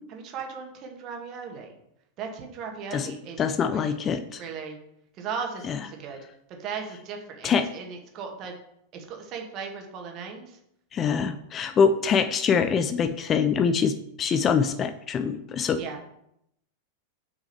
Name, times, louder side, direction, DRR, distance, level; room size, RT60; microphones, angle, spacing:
voice 1, 0.1-1.7 2.2-3.4 3.7-4.0 4.4-4.8 5.1-6.2 6.5-8.6 8.9-10.6 15.8-16.0, right 6 dB, 35° right, 3 dB, 2.0 m, -37 dB
voice 2, 3.4-4.4 5.7-5.8 7.4-7.7 10.9-15.8, left 6 dB, 25° left, 10 dB, 0.6 m, -24 dB
6.4 x 6.2 x 6.8 m, 0.76 s
figure-of-eight pair, 90°, 0 cm